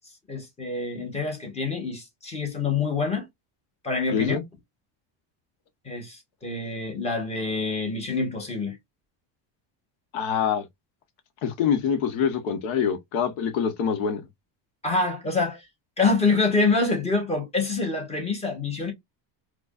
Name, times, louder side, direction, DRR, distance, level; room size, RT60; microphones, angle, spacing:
voice 1, 0.3-3.3 3.8-4.4 5.8-8.8 14.8-15.6 16.0-18.9, left 3 dB, 15° left, 1.1 m, -26 dB
voice 2, 4.1-4.4 10.1-10.7 11.4-14.3, left 7 dB, 65° left, 1.1 m, -25 dB
4.6 x 2.3 x 2.4 m
cardioid pair, 165°, 49 cm